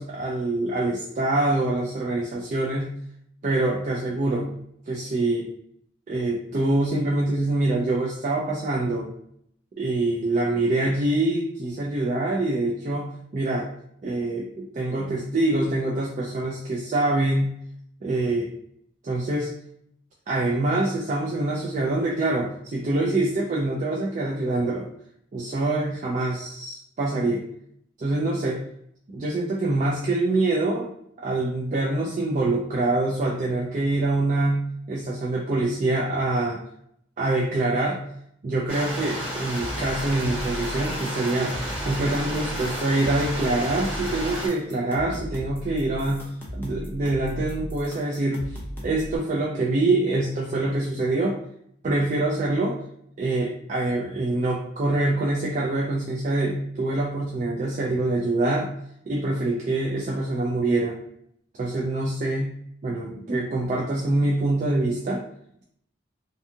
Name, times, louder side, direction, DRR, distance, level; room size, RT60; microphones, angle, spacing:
voice 1, 0.0-2.9 3.4-4.5 4.9-5.5 6.1-9.1 9.8-13.7 14.0-17.5 18.0-18.5 19.0-19.5 20.3-24.9 25.3-27.4 28.0-28.6 29.1-30.9 31.2-36.6 37.2-38.0 38.4-41.6 41.8-51.4 51.8-52.8 53.2-58.7 59.1-61.0 61.6-62.5 62.8-65.2, right 2 dB, 40° right, -3 dB, 0.3 m, -25 dB
Stream, 38.7-44.5, equal, 10° right, 1.0 m, -32 dB
sound 1, 39.5-49.2, equal, 10° left, 0.5 m, -37 dB
2.6 x 2.3 x 2.6 m, 0.71 s
head